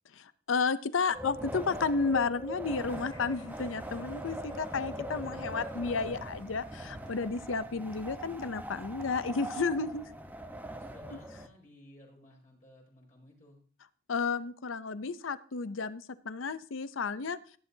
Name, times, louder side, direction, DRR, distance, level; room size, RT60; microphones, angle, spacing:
voice 1, 0.1-10.0 14.1-17.6, left 4 dB, 85° left, 14 dB, 0.6 m, -32 dB
Wind, 1.1-11.5, right 1 dB, 10° right, 1.0 m, -41 dB
sound 1, 2.9-7.1, left 2 dB, 20° left, 2.0 m, -61 dB
voice 2, 10.7-13.6, left 1 dB, 40° left, -3 dB, 5.3 m, -58 dB
17.0 x 10.5 x 2.8 m, 0.43 s
head